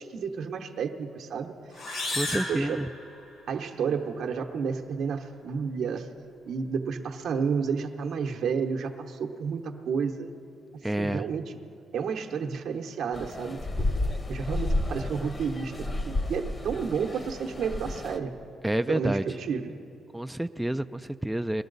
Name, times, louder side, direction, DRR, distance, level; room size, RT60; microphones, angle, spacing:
voice 1, 0.0-1.5 2.5-2.8 3.5-6.1 6.4-10.3 11.0-11.6 11.9-13.9 14.3-18.3 18.9-19.8, right 6 dB, 70° right, 4 dB, 1.0 m, -31 dB
sound 1, 1.7-3.6, left 2 dB, 65° left, 4.3 m, -34 dB
voice 2, 2.1-2.9 10.8-11.3 18.6-19.2 20.1-21.6, right 1 dB, 5° right, 9 dB, 0.4 m, -29 dB
sound 2, 13.1-18.2, left 1 dB, 35° left, 1.2 m, -31 dB
21.0 x 13.5 x 4.0 m, 2.5 s
supercardioid pair, 70°, 0 cm